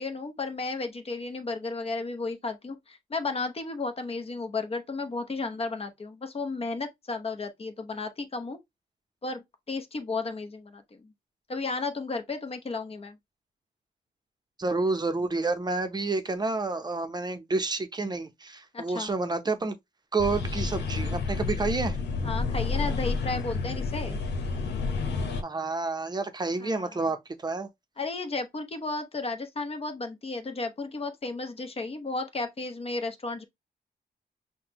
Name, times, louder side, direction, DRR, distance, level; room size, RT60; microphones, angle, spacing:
voice 1, 0.0-8.6 9.2-11.1 11.5-13.2 18.7-19.1 22.2-24.2 26.6-27.0 28.0-33.4, left 3 dB, 35° left, 0.8 m, -33 dB
voice 2, 14.6-19.7 20.1-22.0 25.4-27.2 27.4-27.7, right 3 dB, 25° right, 0.7 m, -29 dB
sound 1, 20.2-25.4, left 4 dB, 90° left, 0.9 m, -30 dB
5.7 x 2.2 x 2.9 m
wide cardioid pair, 115°, 17 cm